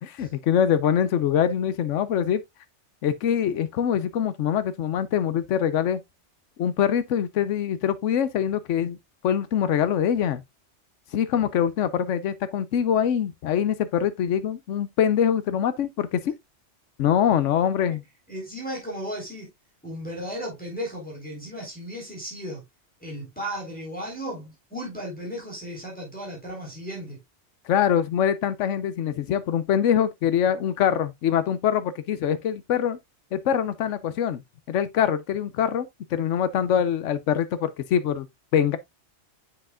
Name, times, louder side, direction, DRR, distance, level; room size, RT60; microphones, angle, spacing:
voice 1, 0.0-2.4 3.0-6.0 6.6-9.0 9.2-10.4 11.1-16.3 17.0-18.0 27.7-33.0 33.3-34.4 34.7-38.3 38.5-38.8, left 9 dB, 85° left, 1.0 m, -24 dB
voice 2, 18.3-19.5 19.8-22.6 23.0-27.2, equal, 5° left, 3.8 m, -35 dB
7.7 x 6.3 x 2.3 m
omnidirectional pair, 1.2 m